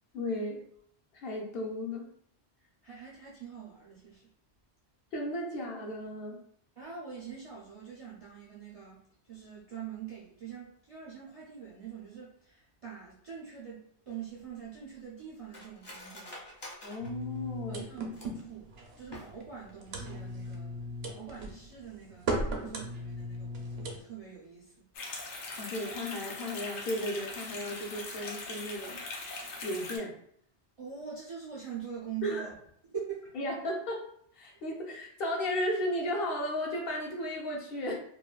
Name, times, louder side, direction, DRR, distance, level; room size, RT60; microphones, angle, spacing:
voice 1, 0.1-0.6 1.1-2.1 5.1-6.4 16.8-17.9 25.6-29.0 29.6-30.1 32.2-32.4 33.3-34.1 34.3-38.0, left 1 dB, 60° left, -1 dB, 0.8 m, -34 dB
voice 2, 2.8-4.3 6.8-9.0 9.3-16.3 17.7-18.0 18.3-24.8 30.8-32.5 32.9-33.2, right 8 dB, 45° right, -6 dB, 0.4 m, -44 dB
Cutlery silverware, 14.1-18.5 19.0-19.7 20.0-20.1 20.4-20.8 21.1-21.3, left 1 dB, 30° left, 0.5 m, -49 dB
sound 1, 17.0-24.0, right 1 dB, 70° right, 0.8 m, -37 dB
sound 2, 24.9-30.0, left 3 dB, 90° left, 0.9 m, -41 dB
3.0 x 2.2 x 2.2 m, 0.66 s
omnidirectional pair, 1.1 m